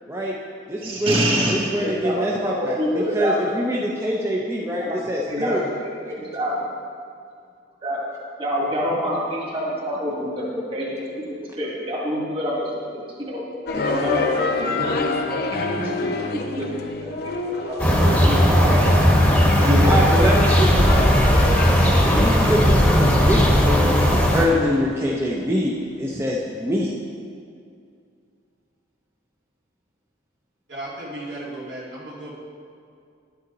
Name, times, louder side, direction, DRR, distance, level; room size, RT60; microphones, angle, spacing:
voice 1, 0.1-0.4 0.7-1.2 1.5-5.7 19.8-21.3 22.0-26.9, equal, 15° right, -4 dB, 0.7 m, -24 dB
voice 2, 0.8-1.5 1.8-3.4 4.8-5.0 5.3-6.5 7.8-8.0 8.4-13.4 13.9-14.7 15.0-15.9 16.3-18.8 19.5-19.9, equal, 30° right, -5 dB, 2.0 m, -27 dB
sound 1, 13.7-24.8, left 3 dB, 55° left, 0.7 m, -29 dB
sound 2, 17.8-24.5, equal, 5° left, 1.1 m, -17 dB
voice 3, 30.7-32.3, right 1 dB, 70° right, -6 dB, 2.4 m, -35 dB
11.0 x 8.3 x 4.0 m, 2.3 s
head